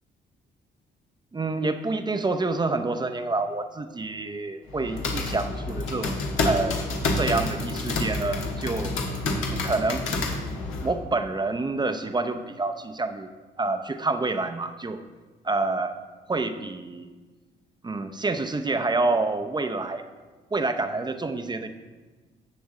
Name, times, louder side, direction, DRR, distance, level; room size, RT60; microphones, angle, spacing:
voice 1, 1.3-6.8 7.1-9.0 9.5-10.0 10.8-13.3 13.6-15.0 15.4-16.0 16.3-17.1 17.8-20.0 20.5-21.7, right 3 dB, 20° right, 8 dB, 0.6 m, -27 dB
sound 1, 4.7-10.9, left 2 dB, 90° left, 1.4 m, -28 dB
10.5 x 7.1 x 3.8 m, 1.3 s
cardioid pair, 90°, 20 cm